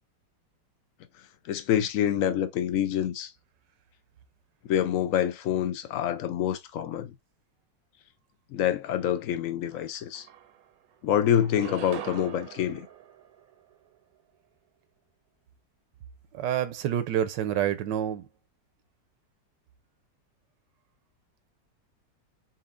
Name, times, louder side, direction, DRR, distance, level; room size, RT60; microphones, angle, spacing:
voice 1, 1.5-3.3 4.7-7.1 8.5-10.3 11.0-12.9, left 10 dB, 65° left, 0.8 m, -26 dB
sound 1, 9.7-9.8 10.1-10.9 11.4-14.0, right 10 dB, 65° right, 1.0 m, -43 dB
voice 2, 16.3-18.3, right 10 dB, 85° right, 1.3 m, -28 dB
4.2 x 3.9 x 2.5 m
omnidirectional pair, 1.9 m